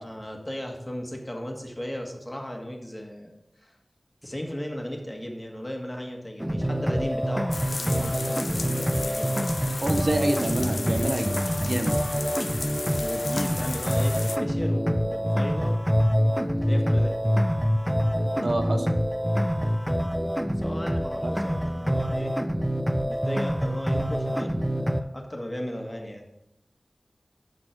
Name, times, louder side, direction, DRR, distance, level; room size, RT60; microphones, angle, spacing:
voice 1, 0.0-3.3 3.6-3.8 4.2-9.5 13.0-15.8 16.4-17.1 20.4-22.3 23.0-26.2, equal, 20° left, 2 dB, 1.5 m, -36 dB
sound 1, 6.4-25.0, equal, 10° right, 0.5 m, -26 dB
sound 2, 7.5-14.4, left 3 dB, 70° left, 0.4 m, -35 dB
voice 2, 9.8-11.4 11.6-12.0 18.4-18.9 21.2-21.3, right 1 dB, 60° right, 5 dB, 0.8 m, -26 dB
11.5 x 4.4 x 4.5 m, 0.84 s
wide cardioid pair, 60°, 0 cm